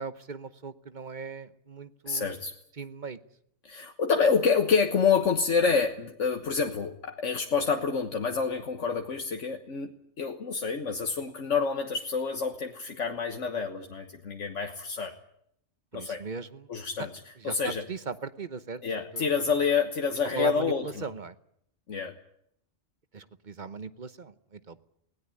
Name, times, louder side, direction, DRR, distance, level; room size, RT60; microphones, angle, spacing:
voice 1, 0.0-2.3 2.8-3.2 15.9-16.7 17.4-19.2 20.3-21.3 23.1-24.8, right 4 dB, 40° right, 13 dB, 1.1 m, -38 dB
voice 2, 2.1-2.5 3.6-15.1 15.9-16.2 16.7-17.1 17.4-17.8 18.8-21.1 21.9-22.1, left 5 dB, 75° left, 4 dB, 1.7 m, -28 dB
19.5 x 18.0 x 9.8 m, 0.72 s
omnidirectional pair, 1.3 m